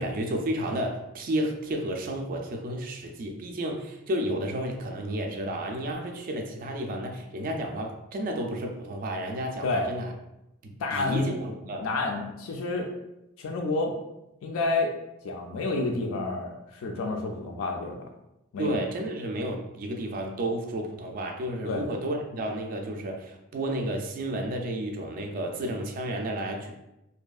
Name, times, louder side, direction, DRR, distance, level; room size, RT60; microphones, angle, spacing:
voice 1, 0.0-10.1 10.6-11.8 18.6-26.7, right 1 dB, 45° right, 2 dB, 0.3 m, -32 dB
voice 2, 10.8-11.4 11.8-12.9 13.4-13.9 14.4-14.9 15.2-18.1 18.5-18.8 21.6-21.8, left 3 dB, 75° left, 2 dB, 0.3 m, -29 dB
2.7 x 2.3 x 2.3 m, 0.90 s
head